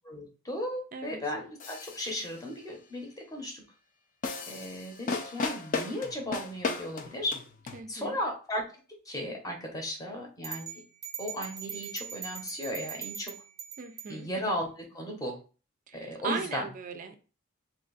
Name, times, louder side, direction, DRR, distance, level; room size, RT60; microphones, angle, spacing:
voice 1, 0.1-3.6 4.5-7.4 7.9-8.6 9.1-10.8 11.2-13.3 14.1-15.4 15.9-16.6, equal, 15° left, 0.8 m, -35 dB
voice 2, 0.9-1.2 7.7-8.2 13.8-14.3 15.9-17.2, right 5 dB, 40° right, 0.4 m, -38 dB
sound 1, 1.6-2.3 4.2-7.8, left 4 dB, 40° left, 0.4 m, -35 dB
sound 2, 10.4-14.1, right 8 dB, 15° right, 0.8 m, -41 dB
2.7 x 2.5 x 3.8 m
head